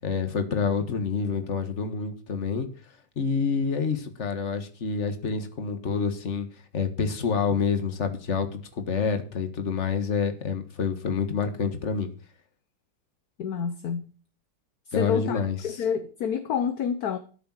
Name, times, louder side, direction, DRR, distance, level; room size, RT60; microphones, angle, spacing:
voice 1, 0.0-2.7 3.1-6.5 6.7-12.1 14.9-15.8, left 5 dB, 40° left, 1.8 m, -27 dB
voice 2, 13.4-14.1 15.0-17.2, left 7 dB, 60° left, 1.4 m, -28 dB
13.0 x 6.8 x 7.5 m
omnidirectional pair, 1.9 m